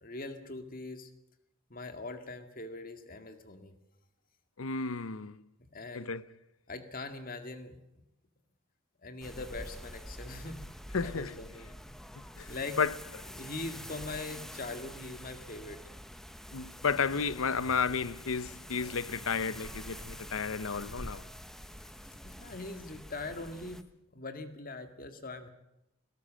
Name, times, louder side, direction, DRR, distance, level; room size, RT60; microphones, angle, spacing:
voice 1, 0.0-1.1 1.7-3.7 5.7-6.2 6.7-7.7 9.0-10.6 11.0-11.7 12.5-12.8 13.3-15.8 22.2-23.8 24.1-25.5, left 3 dB, 45° left, 2.1 m, -42 dB
voice 2, 4.6-5.4 5.9-6.2 10.9-11.3 12.4-12.5 12.8-12.9 16.5-21.2, left 5 dB, 85° left, 0.8 m, -32 dB
sound 1, 9.2-23.8, equal, ahead, 1.0 m, -46 dB
19.5 x 18.0 x 7.5 m
head